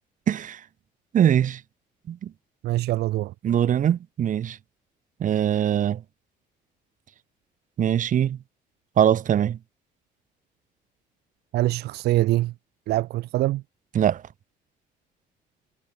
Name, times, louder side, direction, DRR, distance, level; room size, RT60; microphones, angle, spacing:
voice 1, 0.3-0.6 1.1-1.6 2.1-2.2 3.4-4.6 5.2-6.0 7.8-8.4 9.0-9.6 14.0-14.2, right 9 dB, 50° right, 1.9 m, -22 dB
voice 2, 2.6-3.3 11.5-12.5 12.9-13.6, right 16 dB, 75° right, 1.1 m, -24 dB
cardioid pair, 110°, 17 cm